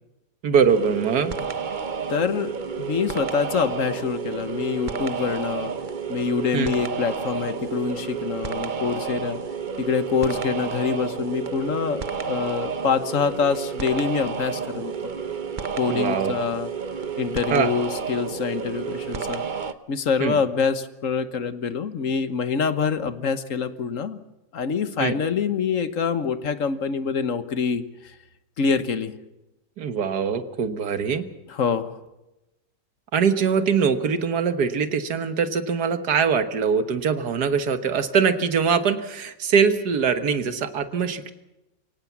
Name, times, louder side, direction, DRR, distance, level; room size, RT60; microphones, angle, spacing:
voice 1, 0.4-1.3 6.5-6.7 15.9-16.3 17.5-17.7 20.2-20.4 25.0-25.1 29.8-31.3 33.1-41.3, right 6 dB, 65° right, 10 dB, 1.8 m, -22 dB
sound 1, 0.7-19.7, right 6 dB, 40° right, 0.7 m, -31 dB
voice 2, 2.1-5.7 6.1-9.4 9.8-14.9 15.8-16.7 17.2-19.4 19.9-24.2 24.5-28.1 28.6-29.1 31.5-31.9, left 6 dB, 50° left, 12 dB, 1.4 m, -25 dB
23.5 x 18.0 x 7.4 m, 0.97 s
omnidirectional pair, 1.9 m